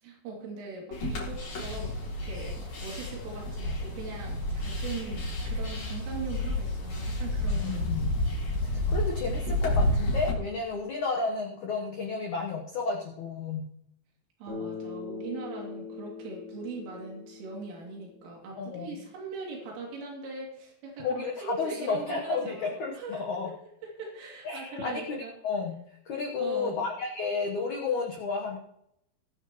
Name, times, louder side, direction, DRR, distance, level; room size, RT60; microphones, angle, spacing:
voice 1, 0.0-7.9 14.4-23.2 23.8-25.3 26.4-26.8, right 3 dB, 85° right, -2 dB, 5.4 m, -40 dB
sound 1, 0.9-10.3, left 1 dB, 40° left, 4.9 m, -30 dB
voice 2, 7.6-8.1 8.6-13.6 18.6-18.9 21.0-23.5 24.4-25.8 26.1-28.6, left 4 dB, 80° left, 0 dB, 1.7 m, -32 dB
Bass guitar, 14.5-18.7, left 5 dB, 50° right, 6.6 m, -42 dB
20.5 x 9.4 x 3.1 m, 0.77 s
omnidirectional pair, 5.6 m